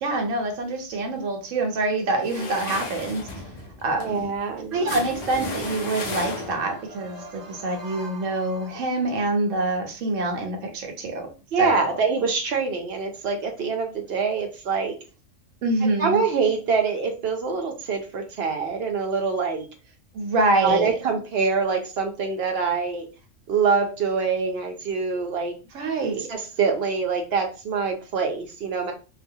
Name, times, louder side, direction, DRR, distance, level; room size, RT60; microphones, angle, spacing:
voice 1, 0.0-3.2 3.8-4.3 4.7-11.3 11.6-11.9 15.6-16.2 20.1-20.9 25.7-26.2, right 2 dB, 80° right, 3 dB, 1.0 m, -25 dB
sound 1, 2.2-6.8, left 3 dB, 90° left, 0.3 m, -34 dB
voice 2, 4.0-4.8 11.5-14.9 16.0-19.7 20.6-23.1 23.5-25.5 26.3-28.9, right 5 dB, 65° right, 3 dB, 0.7 m, -25 dB
sound 2, 4.7-9.3, right 5 dB, ahead, 0.5 m, -42 dB
2.3 x 2.2 x 2.6 m, 0.33 s
omnidirectional pair, 1.3 m